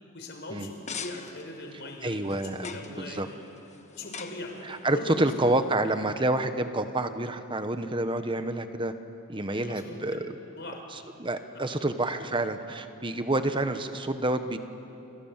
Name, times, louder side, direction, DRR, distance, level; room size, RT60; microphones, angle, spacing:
voice 1, 0.1-2.1 2.4-3.2 4.0-4.5 4.9-5.3 9.4-10.2 10.5-10.8 11.6-11.8, left 2 dB, 50° left, 3 dB, 4.6 m, -40 dB
sound 1, 0.6-6.1, left 5 dB, 30° left, 1.3 m, -44 dB
voice 2, 2.0-3.3 4.6-8.9 9.3-10.3 10.9-14.6, right 2 dB, 20° right, 9 dB, 1.2 m, -28 dB
28.5 x 28.0 x 7.5 m, 2.9 s
head